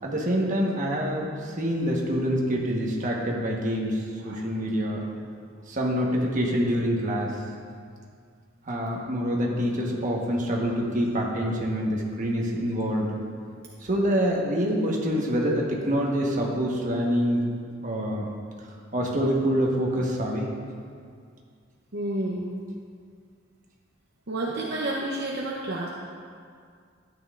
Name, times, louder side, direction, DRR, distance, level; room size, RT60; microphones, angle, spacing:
voice 1, 0.0-5.0 5.7-7.3 8.7-13.1 13.8-17.5 17.8-18.3 18.9-20.5, equal, 40° right, -2 dB, 1.3 m, -26 dB
voice 2, 21.9-22.5 24.3-25.9, right 1 dB, 55° right, -3 dB, 0.8 m, -30 dB
12.5 x 8.9 x 2.5 m, 2.2 s
head